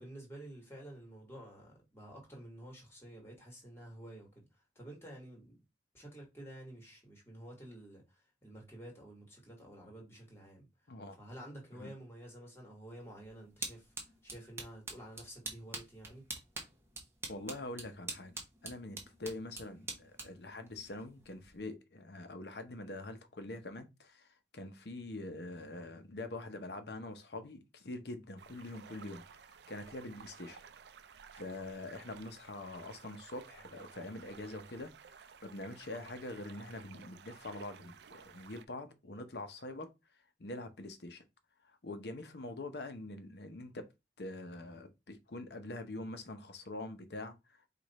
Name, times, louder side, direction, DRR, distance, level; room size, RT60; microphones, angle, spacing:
voice 1, 0.0-5.6 5.9-10.7 11.2-16.2, right 1 dB, 15° left, 1.6 m, -51 dB
voice 2, 10.9-11.2 11.7-11.9 17.3-30.6 31.3-34.9 35.2-39.9 40.4-41.2 41.6-43.9 44.2-47.7, left 2 dB, 65° left, 0.8 m, -44 dB
sound 1, 12.9-21.6, right 3 dB, 15° right, 1.0 m, -47 dB
sound 2, 28.4-38.7, right 6 dB, 65° right, 0.4 m, -55 dB
4.9 x 2.5 x 4.1 m
head